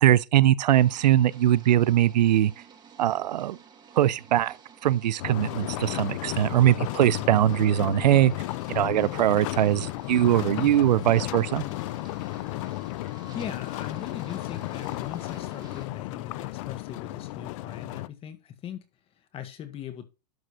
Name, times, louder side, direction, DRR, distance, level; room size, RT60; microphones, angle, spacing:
voice 1, 0.0-2.5 3.0-3.6 3.9-4.6 4.8-8.3 8.7-11.6, right 12 dB, 80° right, 0.6 m, -21 dB
sound 1, 0.7-15.9, right 7 dB, 20° right, 1.9 m, -52 dB
sound 2, 5.2-18.1, left 19 dB, 50° left, 0.5 m, -34 dB
voice 2, 13.3-20.0, left 9 dB, 25° left, 1.8 m, -40 dB
12.0 x 5.0 x 4.8 m
hypercardioid pair, 135°, 21 cm